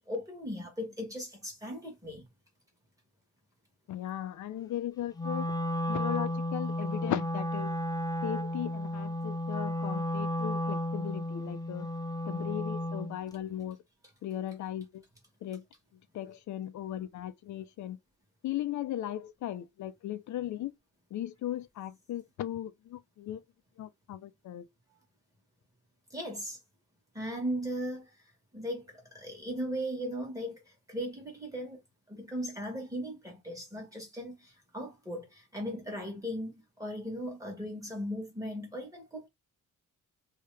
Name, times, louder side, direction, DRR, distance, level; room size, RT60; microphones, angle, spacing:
voice 1, 0.1-2.3 26.1-26.6 27.1-28.1 28.5-30.6 30.9-31.8 32.1-39.3, equal, 10° right, 1.5 m, -37 dB
voice 2, 3.9-5.6 5.9-7.8 8.2-11.9 12.2-13.8 14.2-15.0 15.4-15.6 16.1-18.0 18.4-20.7 21.1-23.4 23.8-24.7, left 12 dB, 65° left, 0.5 m, -37 dB
Wind instrument woodwind instrument, 5.2-13.2, left 1 dB, 15° left, 0.3 m, -33 dB
3.1 x 2.8 x 3.3 m
wide cardioid pair, 170°, 31 cm